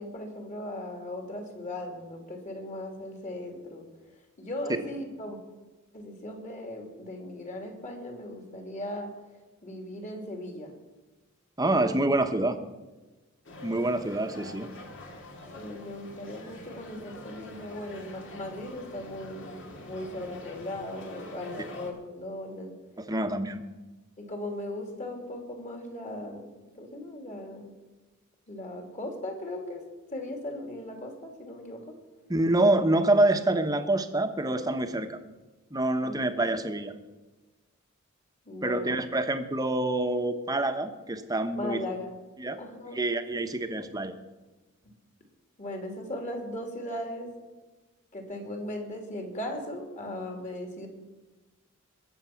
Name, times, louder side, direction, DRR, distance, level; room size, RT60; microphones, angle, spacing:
voice 1, 0.0-3.9 4.4-5.4 5.9-9.1 9.6-10.7 15.5-22.7 24.2-26.5 26.8-27.7 28.5-31.9 36.0-36.2 38.5-39.0 41.5-42.1 42.6-43.0 43.3-43.4 43.7-43.9 45.6-47.3 48.1-50.9, left 1 dB, 35° left, 3 dB, 2.8 m, -38 dB
voice 2, 11.6-12.6 13.6-14.7 23.0-23.6 32.3-35.2 35.7-36.9 38.6-41.8 42.4-42.6 42.9-44.1, right 2 dB, 15° right, 8 dB, 1.0 m, -26 dB
sound 1, 13.4-21.9, left 2 dB, 60° left, 2.2 m, -45 dB
22.0 x 7.4 x 5.9 m, 1.2 s
head